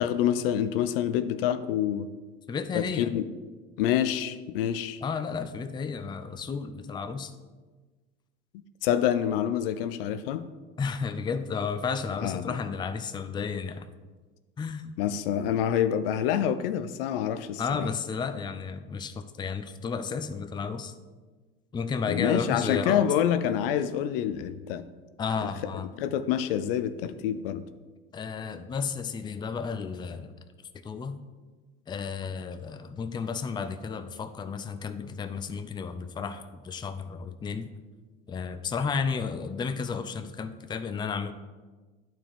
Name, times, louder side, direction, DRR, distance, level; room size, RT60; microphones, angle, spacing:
voice 1, 0.0-2.1 2.7-3.2 3.8-5.0 8.8-10.5 12.2-12.6 15.0-17.9 22.1-24.9 25.4-25.5 26.0-27.6, left 10 dB, 65° left, 13 dB, 0.5 m, -27 dB
voice 2, 2.5-3.1 5.0-7.3 10.8-13.9 14.6-14.8 17.6-20.9 21.7-23.0 25.2-25.9 28.1-30.3 30.8-31.2 31.9-37.7 38.3-41.3, left 5 dB, 15° left, 11 dB, 0.4 m, -32 dB
11.0 x 4.5 x 3.5 m, 1.3 s
hypercardioid pair, 80°, 30 cm